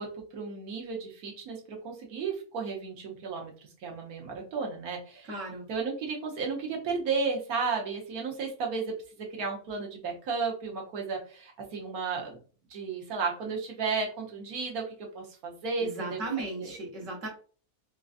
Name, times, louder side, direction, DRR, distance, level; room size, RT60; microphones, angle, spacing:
voice 1, 0.0-3.5 3.8-5.3 5.7-12.4 12.7-14.8 15.1-16.2 16.6-16.7, right 4 dB, 80° right, 0 dB, 1.4 m, -33 dB
voice 2, 5.3-5.7 15.8-17.3, right 3 dB, 60° right, 0 dB, 1.4 m, -36 dB
4.3 x 2.5 x 2.4 m, 0.40 s
omnidirectional pair, 1.5 m